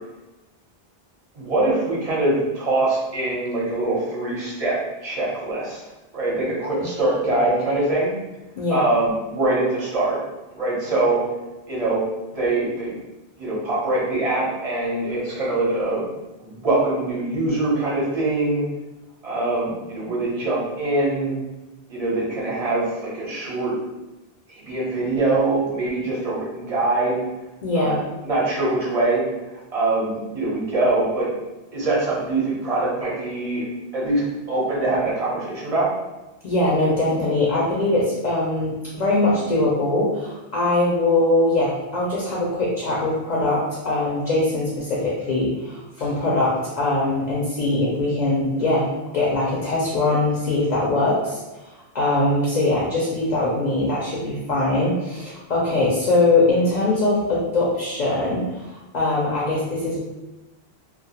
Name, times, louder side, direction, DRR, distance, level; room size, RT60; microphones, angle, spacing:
voice 1, 1.3-4.8 5.0-5.8 6.1-8.1 8.7-10.2 10.5-11.2 11.7-12.0 12.3-12.9 13.4-16.0 16.4-18.6 19.2-21.3 21.9-23.7 24.5-27.2 27.7-28.0 28.2-29.2 29.5-31.3 31.7-33.7 33.9-34.2 34.5-35.9, right 2 dB, 40° right, -6 dB, 0.7 m, -23 dB
voice 2, 27.6-28.0 36.4-48.9 49.1-51.7 51.9-60.0, left 2 dB, 55° left, -5 dB, 0.5 m, -22 dB
2.2 x 2.0 x 2.7 m, 1.1 s
omnidirectional pair, 1.0 m